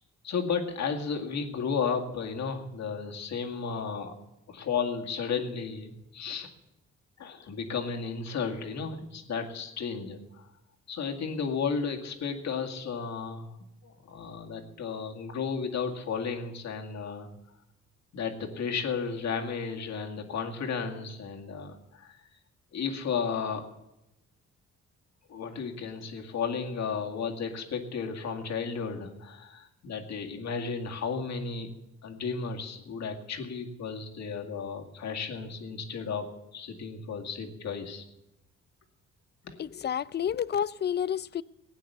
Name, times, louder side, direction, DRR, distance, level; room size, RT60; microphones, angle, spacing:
voice 1, 0.2-4.1 4.5-6.5 7.2-10.5 10.9-13.6 13.8-17.3 18.1-22.2 22.7-23.7 25.3-31.7 32.0-38.0 39.4-39.6, left 5 dB, 65° left, 2 dB, 2.2 m, -33 dB
voice 2, 39.6-41.4, left 9 dB, 35° left, 19 dB, 0.4 m, -30 dB
16.5 x 9.2 x 6.8 m, 0.90 s
cardioid pair, 90°, 30 cm